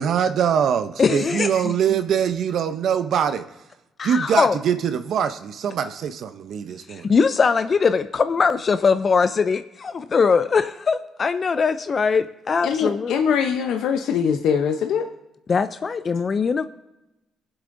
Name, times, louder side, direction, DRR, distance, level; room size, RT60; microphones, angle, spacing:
voice 1, 0.0-3.4 4.0-7.1, right 8 dB, 65° right, 9 dB, 0.6 m, -23 dB
voice 2, 1.0-1.7 4.0-4.6 6.9-13.1 15.5-16.7, left 5 dB, 35° left, 11 dB, 0.4 m, -21 dB
voice 3, 12.6-15.1, left 7 dB, 85° left, 5 dB, 0.7 m, -22 dB
21.0 x 7.9 x 2.6 m, 0.96 s
cardioid pair, 115°, 0 cm